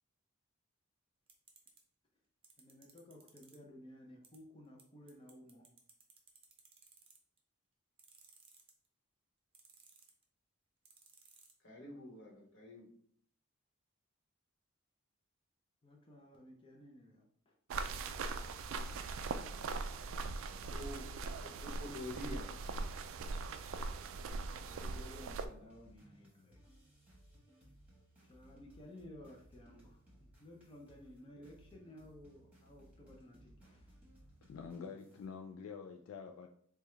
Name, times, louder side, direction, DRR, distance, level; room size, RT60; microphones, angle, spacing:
sound 1, 1.3-1.8 2.4-3.6 4.2-4.4 4.8-4.9 5.1-7.4 8.0-8.9 9.5-10.2 10.9-11.5, right 6 dB, 25° right, 0.6 m, -60 dB
voice 1, 2.6-5.7 15.8-17.5 24.7-26.6 28.3-34.0, left 1 dB, 25° left, -1 dB, 0.5 m, -56 dB
voice 2, 11.6-12.9 20.5-22.5, left 1 dB, 60° left, -2 dB, 1.2 m, -47 dB
sound 2, 17.7-25.5, right 4 dB, 65° right, 0.3 m, -41 dB
sound 3, 17.8-35.3, equal, 5° right, 1.3 m, -62 dB
voice 3, 34.4-36.5, left 6 dB, 80° left, 4 dB, 0.3 m, -47 dB
4.6 x 2.3 x 3.3 m, 0.62 s
head